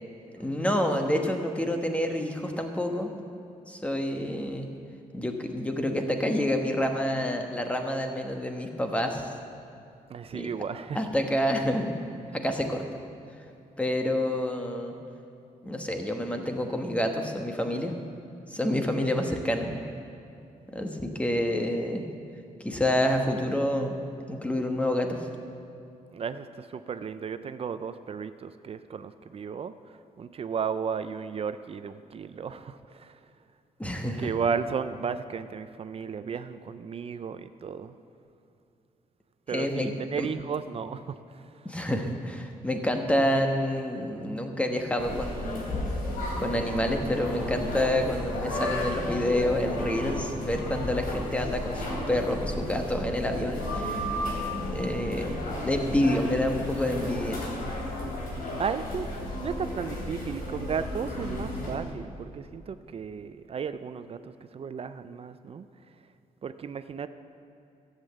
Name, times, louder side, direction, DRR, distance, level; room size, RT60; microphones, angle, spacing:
voice 1, 0.4-3.1 3.7-4.7 5.1-9.3 10.3-10.5 10.9-11.9 12.3-12.8 13.8-14.9 15.6-17.9 18.5-19.7 20.7-22.0 22.6-24.0 24.3-25.3 33.8-34.3 39.5-39.9 40.2-40.3 41.6-45.8 46.4-54.0 54.7-57.4, left 1 dB, 10° left, 4 dB, 1.2 m, -28 dB
voice 2, 10.1-11.0 26.1-33.2 34.2-37.9 39.5-41.7 58.6-59.1 59.4-65.7 66.4-67.1, right 6 dB, 45° right, 11 dB, 0.5 m, -34 dB
sound 1, 45.0-61.8, left 1 dB, 90° left, 3.6 m, -33 dB
14.0 x 8.2 x 7.9 m, 2.6 s
wide cardioid pair, 140°, 14 cm